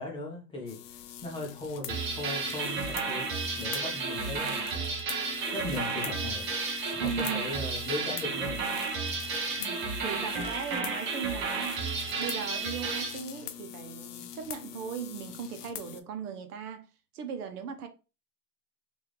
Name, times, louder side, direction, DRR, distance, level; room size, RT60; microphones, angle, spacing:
voice 1, 0.0-3.3 3.6-4.9 5.5-6.4 6.9-8.6 9.6-9.8 10.2-10.3, left 2 dB, 10° left, 0.6 m, -38 dB
sound 1, 0.7-16.0, left 10 dB, 70° left, 0.6 m, -43 dB
sound 2, 1.9-13.2, right 4 dB, 25° right, 0.6 m, -32 dB
voice 2, 7.0-7.5 10.0-16.9 17.1-17.9, right 7 dB, 70° right, 0.8 m, -38 dB
3.3 x 2.6 x 3.1 m
hypercardioid pair, 135°, 47 cm